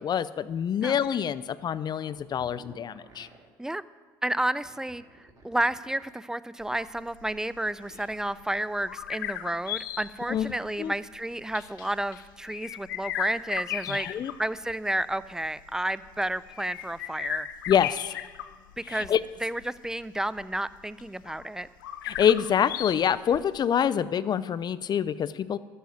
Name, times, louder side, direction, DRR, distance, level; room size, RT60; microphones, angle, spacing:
voice 1, 0.0-3.3 10.3-10.9 13.9-14.3 17.7-18.2 18.9-19.2 22.0-25.6, left 8 dB, 40° left, 16 dB, 0.6 m, -26 dB
sound 1, 2.0-3.5 4.4-6.2, right 3 dB, 35° right, 3.0 m, -54 dB
voice 2, 4.2-5.0 5.4-14.1 14.4-17.5 18.8-19.1 19.4-21.7, right 1 dB, 5° right, 17 dB, 0.5 m, -31 dB
sound 2, 6.6-23.9, left 12 dB, 90° left, 0.5 m, -38 dB
12.5 x 8.0 x 7.8 m, 1.4 s
hypercardioid pair, 70°, 10 cm